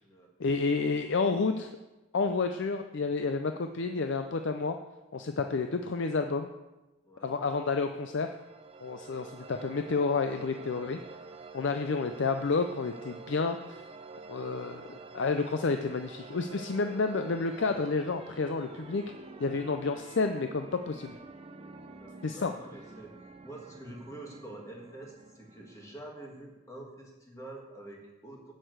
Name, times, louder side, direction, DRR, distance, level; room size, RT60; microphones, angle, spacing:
voice 1, 0.4-1.7 2.1-4.8 5.1-6.5 7.2-8.3 8.8-11.0 11.5-13.6 14.3-19.0 19.4-21.2 22.2-22.5, left 4 dB, 55° left, 6 dB, 0.5 m, -30 dB
voice 2, 7.0-7.4 21.9-23.1 23.4-28.5, right 1 dB, 15° left, -1 dB, 1.8 m, -47 dB
sound 1, 8.0-26.6, right 3 dB, 25° right, 0.5 m, -48 dB
7.7 x 6.6 x 8.0 m, 1.1 s
head